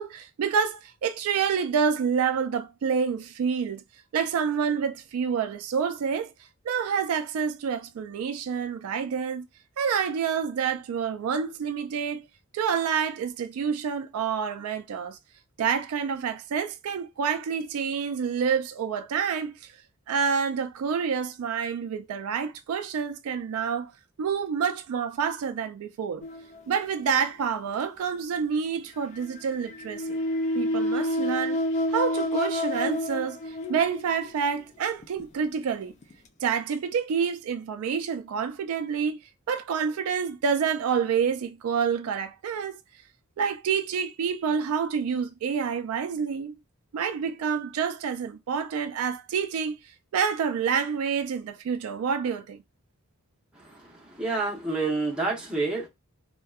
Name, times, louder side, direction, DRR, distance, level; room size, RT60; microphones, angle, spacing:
voice 1, 0.0-3.8 4.1-6.3 6.6-9.5 9.8-12.3 12.5-15.2 15.6-19.7 20.1-23.9 24.2-26.2 26.7-30.2 30.5-31.6 31.9-35.9 36.4-39.2 39.5-42.8 43.4-46.6 46.9-49.8 50.1-52.6, right 6 dB, 85° right, 0.3 m, -28 dB
sound 1, 26.2-27.2 29.2-34.3 35.0-35.2 36.0-36.1, left 1 dB, 30° left, 0.3 m, -29 dB
voice 2, 53.6-55.9, right 3 dB, 5° right, 0.7 m, -29 dB
2.6 x 2.1 x 2.3 m
head